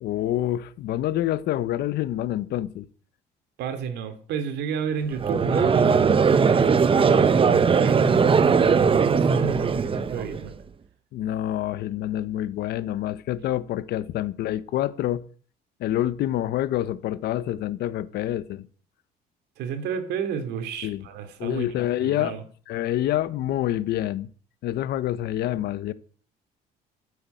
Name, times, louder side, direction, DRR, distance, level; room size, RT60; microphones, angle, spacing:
voice 1, 0.0-2.9 11.1-15.2 15.8-18.7 20.8-21.0 21.4-22.3 22.7-24.3 24.6-25.9, left 13 dB, 75° left, 1.1 m, -27 dB
voice 2, 3.6-8.0 8.6-10.5 19.6-21.6 22.0-22.4, right 7 dB, 80° right, 3.1 m, -32 dB
Conversation / Crowd, 5.2-10.5, right 5 dB, 30° right, 1.2 m, -19 dB
14.0 x 8.4 x 8.6 m
cardioid pair, 110°, 17 cm